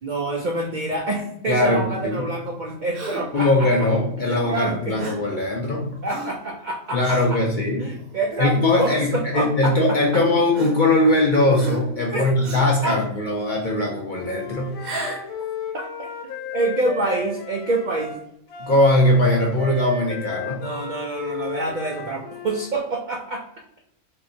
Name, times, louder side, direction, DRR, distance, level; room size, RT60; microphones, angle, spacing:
voice 1, 0.0-3.7 4.2-5.0 6.0-7.2 7.8-10.2 12.1-12.3 12.8-13.0 15.0-15.1 16.0-16.1 16.5-18.2 20.6-23.4, right 2 dB, 85° right, 0 dB, 0.4 m, -27 dB
voice 2, 1.5-2.3 3.3-5.9 6.9-7.8 8.4-14.7 18.6-20.6, left 1 dB, 55° left, -1 dB, 0.6 m, -20 dB
Gasp, 2.9-3.4 5.0-5.3 6.1-6.4 7.0-7.3 8.0-8.2 9.2-9.3 10.5-11.2 11.6-12.0 12.4-12.8 14.7-15.3, right 1 dB, 50° right, 0.9 m, -33 dB
Wind instrument woodwind instrument, 14.2-22.7, left 5 dB, 90° left, 1.1 m, -34 dB
2.8 x 2.5 x 3.7 m, 0.76 s
omnidirectional pair, 1.4 m